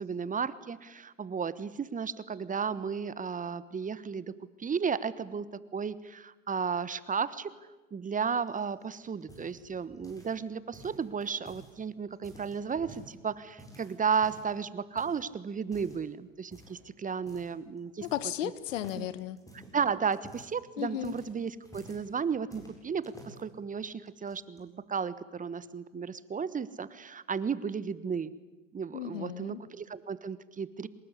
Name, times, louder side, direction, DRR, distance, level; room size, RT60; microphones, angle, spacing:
voice 1, 0.0-4.3 4.6-7.5 7.9-18.1 18.4-18.5 18.9-19.1 19.7-28.3 28.7-30.9, right 6 dB, 20° right, 17 dB, 1.2 m, -34 dB
sound 1, 8.5-10.4 10.7-11.7 12.1-13.1 13.6-14.6 15.0-15.2 15.6-16.0 16.5-16.8 17.3-17.5 17.8-18.4 18.7-22.1 22.5-23.4 24.1-24.6, equal, 10° left, 7.7 m, -52 dB
voice 2, 18.0-19.4 20.8-21.2 28.9-29.6, left 13 dB, 75° left, 17 dB, 1.5 m, -35 dB
24.5 x 20.0 x 9.9 m, 1.1 s
hypercardioid pair, 90°, 38 cm